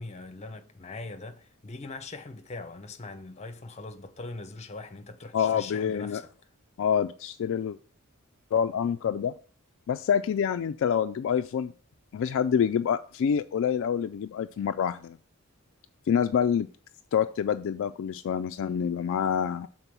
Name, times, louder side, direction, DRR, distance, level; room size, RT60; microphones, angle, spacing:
voice 1, 0.0-6.3, left 3 dB, 30° left, 0.7 m, -41 dB
voice 2, 5.3-6.2 6.8-7.8 8.5-9.3 9.9-11.7 12.1-15.2 16.1-16.7 17.1-19.7, left 8 dB, 60° left, 0.3 m, -27 dB
6.8 x 3.9 x 5.9 m
head